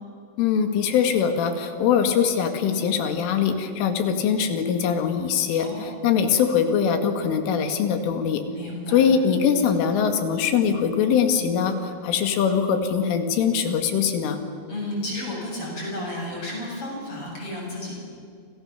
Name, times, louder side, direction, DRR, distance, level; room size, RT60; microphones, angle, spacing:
voice 1, 0.4-8.4 8.9-14.4, left 7 dB, 90° left, 6 dB, 4.6 m, -22 dB
voice 2, 5.6-6.1 8.6-9.0 14.7-17.9, left 1 dB, 30° left, -2 dB, 8.0 m, -32 dB
30.0 x 26.5 x 7.3 m, 2.4 s
omnidirectional pair, 5.6 m